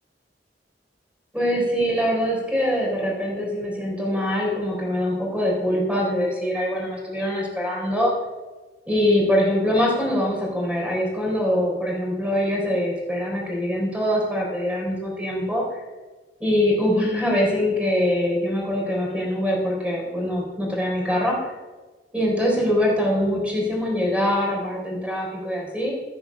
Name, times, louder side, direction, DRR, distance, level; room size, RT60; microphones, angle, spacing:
voice 1, 1.3-8.1 8.9-15.8 16.4-21.4 22.1-25.9, equal, 5° right, -3 dB, 3.8 m, -23 dB
15.0 x 5.8 x 6.3 m, 1.3 s
head